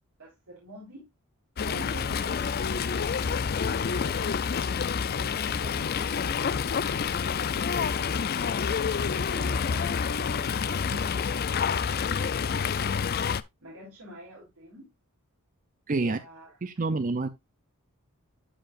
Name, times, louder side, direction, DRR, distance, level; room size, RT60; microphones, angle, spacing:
voice 1, 0.2-1.1 1.6-3.0 3.8-4.5 5.0-7.9 9.3-12.3 13.6-14.9 16.0-16.9, equal, 80° right, 3.4 m, -47 dB
Fowl, 1.6-13.4, left 6 dB, 45° left, 0.4 m, -28 dB
voice 2, 15.9-16.2 16.6-17.3, right 3 dB, 35° right, 0.6 m, -27 dB
12.5 x 4.7 x 2.5 m
head